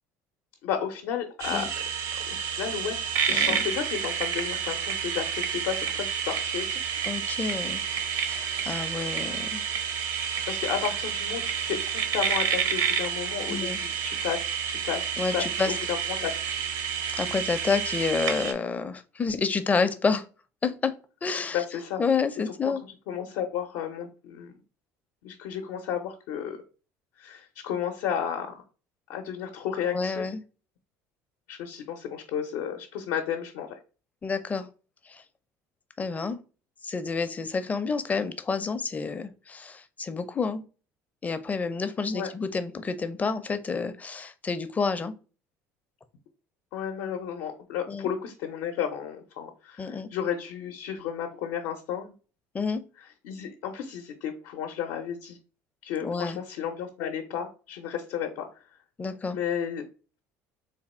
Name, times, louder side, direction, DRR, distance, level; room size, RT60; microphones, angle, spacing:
voice 1, 0.6-1.7 2.2-6.7 10.5-16.6 21.5-22.0 23.1-24.5 25.2-26.6 27.2-28.6 29.1-30.3 31.5-33.8 42.1-42.3 46.7-52.1 53.2-55.4 55.8-58.5 59.3-59.8, left 8 dB, 80° left, 4 dB, 0.6 m, -33 dB
sound 1, 1.4-18.5, right 7 dB, 70° right, 0.8 m, -29 dB
voice 2, 3.3-3.6 7.1-7.8 8.2-9.6 13.5-13.8 15.2-15.7 17.2-20.2 20.6-20.9 21.2-21.6 22.0-22.8 29.9-30.4 34.2-34.7 35.1-35.2 36.0-36.4 36.8-40.6 41.2-45.1 47.9-48.1 49.8-50.1 52.5-52.8 56.0-56.4 59.0-59.4, left 4 dB, 20° left, 10 dB, 0.5 m, -29 dB
3.4 x 2.2 x 4.2 m, 0.35 s
supercardioid pair, 100°, 7 cm